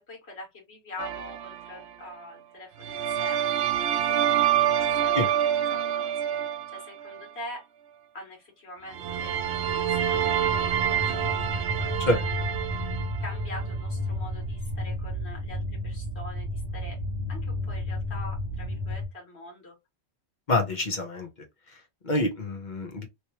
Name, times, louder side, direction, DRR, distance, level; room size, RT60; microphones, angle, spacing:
voice 1, 0.0-3.4 4.8-7.7 8.1-10.6 10.9-13.0 13.2-17.0 17.3-19.8, left 1 dB, 75° left, 1.9 m, -44 dB
sound 1, 1.0-1.8 2.8-7.2 8.9-13.7, right 10 dB, 85° right, 0.9 m, -27 dB
sound 2, 9.0-19.0, equal, 50° right, 0.8 m, -33 dB
voice 2, 20.5-21.3 21.7-23.1, left 2 dB, 45° left, 0.9 m, -27 dB
3.1 x 3.0 x 2.8 m
omnidirectional pair, 1.1 m